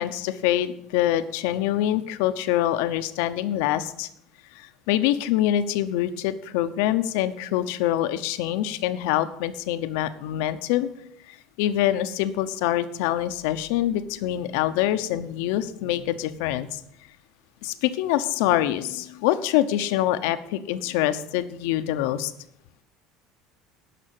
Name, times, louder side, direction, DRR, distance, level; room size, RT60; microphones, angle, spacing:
voice 1, 0.0-4.1 4.5-10.9 11.3-16.8 17.6-22.3, left 12 dB, 80° left, 11 dB, 0.8 m, -25 dB
11.0 x 6.0 x 7.7 m, 0.76 s
cardioid pair, 130°, 0 cm